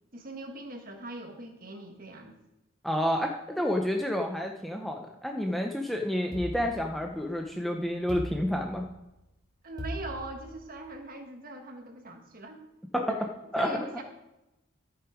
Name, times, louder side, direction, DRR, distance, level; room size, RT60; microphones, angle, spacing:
voice 1, 0.1-2.4 9.6-12.6 12.9-13.2 13.6-14.0, right 2 dB, 40° right, 4 dB, 1.3 m, -41 dB
voice 2, 2.8-8.9 12.9-13.0 13.5-13.8, equal, ahead, 2 dB, 0.6 m, -29 dB
sound 1, 6.3-7.4 8.1-9.1 9.8-10.9, equal, 20° right, 3.0 m, -40 dB
13.5 x 6.0 x 4.9 m, 0.94 s
head